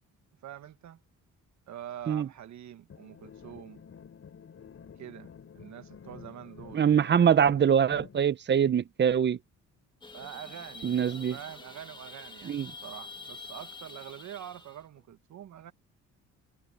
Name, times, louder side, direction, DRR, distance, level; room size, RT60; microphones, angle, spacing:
voice 1, 0.4-1.0 1.7-3.8 5.0-6.9 10.1-10.9 11.3-15.7, right 11 dB, 65° right, 1.6 m, -45 dB
sound 1, 2.9-8.2, left 7 dB, 50° left, 5.6 m, -50 dB
voice 2, 6.7-9.4 10.8-11.4 12.5-12.7, right 8 dB, 35° right, 0.7 m, -24 dB
sound 2, 10.0-14.8, left 3 dB, 15° left, 2.0 m, -46 dB
cardioid pair, 95°, 30 cm